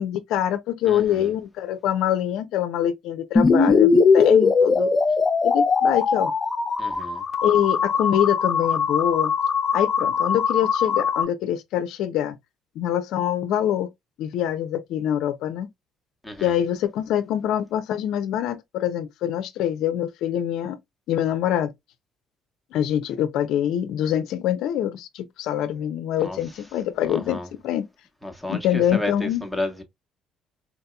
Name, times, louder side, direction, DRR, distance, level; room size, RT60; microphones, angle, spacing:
voice 1, 0.0-4.9 5.4-6.3 7.4-9.3 9.7-12.3 12.8-13.9 14.2-15.7 16.4-20.8 21.1-21.7 22.7-27.8 28.5-29.4, left 10 dB, 80° left, 0.5 m, -24 dB
voice 2, 0.8-1.3 6.8-7.2 16.2-16.6 26.2-26.4 27.1-27.5 28.2-29.8, left 1 dB, ahead, 1.1 m, -32 dB
sound 1, 3.4-11.2, left 5 dB, 35° left, 0.7 m, -20 dB
4.2 x 2.7 x 2.2 m
supercardioid pair, 85°, 0 cm